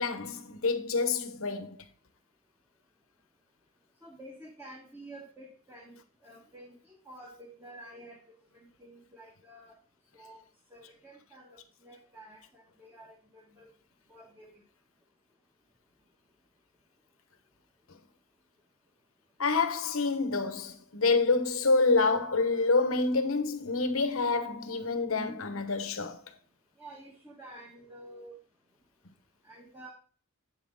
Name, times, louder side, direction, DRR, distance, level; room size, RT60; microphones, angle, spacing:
voice 1, 0.0-1.8 19.4-26.2, left 3 dB, 70° left, 1.1 m, -27 dB
voice 2, 4.0-6.0 6.2-9.8 10.1-10.4 10.7-13.7 14.1-14.5 26.8-28.4 29.4-29.9, right 1 dB, 10° right, 1.7 m, -50 dB
8.3 x 6.2 x 4.0 m
head